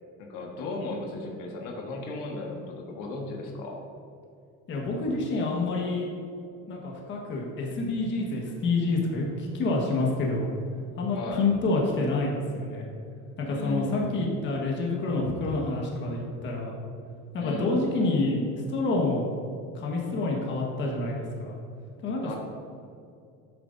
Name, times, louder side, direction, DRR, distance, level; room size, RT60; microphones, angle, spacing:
voice 1, 0.2-3.8 11.1-11.5 13.4-14.3 17.4-17.7 22.2-22.4, left 2 dB, 75° left, 0 dB, 1.6 m, -35 dB
voice 2, 4.7-6.1 6.7-10.5 11.0-12.9 13.4-16.7 17.3-19.3 19.7-21.6 22.0-22.4, left 2 dB, 40° left, -1 dB, 1.5 m, -28 dB
11.0 x 8.6 x 2.7 m, 2.5 s
cardioid pair, 150°, 30 cm